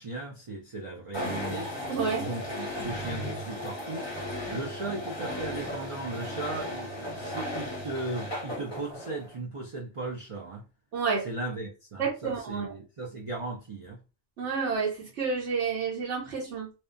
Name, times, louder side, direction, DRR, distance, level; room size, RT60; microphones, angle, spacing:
voice 1, 0.0-1.7 2.2-4.1 4.5-10.6 11.2-14.0, right 2 dB, 60° right, 0.3 m, -37 dB
sound 1, 1.1-9.3, left 1 dB, 25° left, 0.7 m, -36 dB
voice 2, 1.9-2.3 10.9-11.3 12.0-12.7 14.4-16.7, right 5 dB, 80° right, 1.1 m, -30 dB
2.8 x 2.1 x 2.5 m
omnidirectional pair, 1.2 m